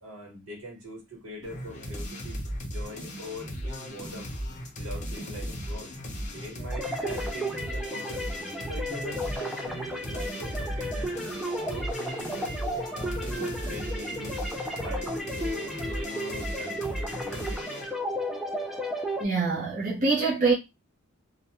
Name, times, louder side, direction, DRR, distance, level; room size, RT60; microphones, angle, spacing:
voice 1, 0.0-4.3 4.7-5.9 6.3-8.3 8.7-11.1 11.6-12.5 12.9-14.4 14.8-17.7, equal, 75° right, 1.3 m, -42 dB
sound 1, 1.4-17.9, equal, 35° left, 0.8 m, -36 dB
sound 2, 6.7-19.2, equal, ahead, 0.4 m, -34 dB
voice 2, 19.2-20.5, right 4 dB, 40° right, 0.7 m, -25 dB
2.4 x 2.2 x 3.0 m
head